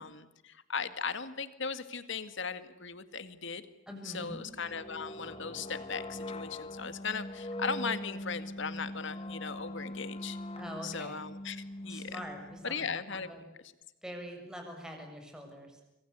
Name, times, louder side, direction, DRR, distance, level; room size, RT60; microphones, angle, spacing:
voice 1, 0.0-3.6 4.0-10.4 10.8-12.2 12.6-13.3, left 5 dB, 65° left, 11 dB, 2.0 m, -38 dB
voice 2, 3.9-4.4 10.5-11.2 11.9-13.4 14.0-15.8, equal, 5° right, 2 dB, 6.9 m, -44 dB
sound 1, 4.2-12.9, left 1 dB, 30° left, 1.4 m, -42 dB
27.5 x 24.5 x 8.3 m, 0.91 s
head